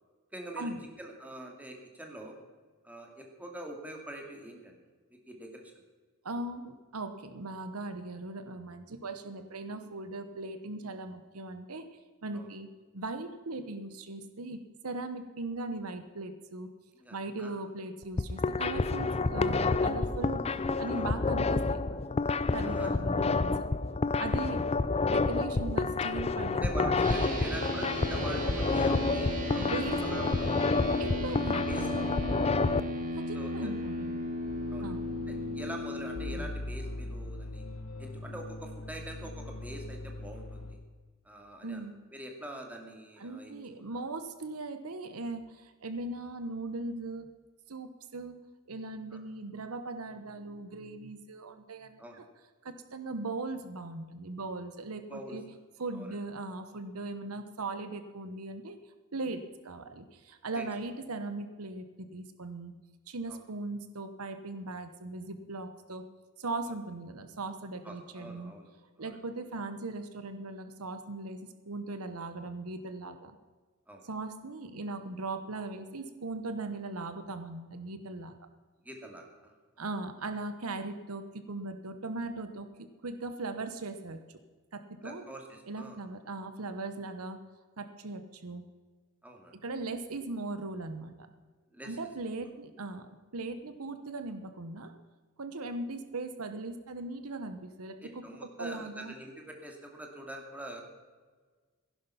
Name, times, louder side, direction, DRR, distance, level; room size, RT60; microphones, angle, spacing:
voice 1, 0.3-0.7 1.0-2.4 2.8-4.8 5.1-5.7 12.3-12.5 17.0-17.5 20.9-21.0 22.6-23.1 24.2-24.4 26.6-31.1 31.5-31.9 32.3-32.5 33.3-33.7 34.7-34.9 35.3-37.6 38.0-40.8 41.2-41.9 42.1-43.6 49.1-49.2 52.0-52.2 55.1-55.4 55.9-56.1 60.5-60.6 63.3-63.4 67.8-68.7 69.0-69.2 73.9-74.0 78.8-79.5 85.0-86.0 89.2-89.6 91.7-92.0 92.3-92.4 98.0-100.8, right 1 dB, 5° right, 1 dB, 2.3 m, -44 dB
voice 2, 6.2-11.9 12.2-12.7 12.9-16.7 17.1-22.0 22.5-23.7 24.2-24.6 25.1-27.3 29.6-30.2 31.0-31.7 33.1-34.2 34.8-35.1 41.6-41.9 43.2-47.3 47.7-48.4 48.7-52.2 52.6-55.4 55.8-58.8 59.1-62.7 63.1-66.0 66.4-68.5 69.0-73.4 74.0-78.4 79.8-84.4 84.7-85.3 85.7-87.4 87.8-88.6 89.6-91.3 91.8-94.9 95.4-99.1, right 2 dB, 70° right, 8 dB, 1.0 m, -39 dB
sound 1, 18.0-32.8, left 3 dB, 30° left, 0.5 m, -29 dB
sound 2, 27.0-36.4, left 1 dB, 40° right, 3.0 m, -35 dB
sound 3, 34.5-40.7, left 1 dB, 85° left, 1.5 m, -41 dB
16.0 x 11.0 x 5.7 m, 1.4 s
head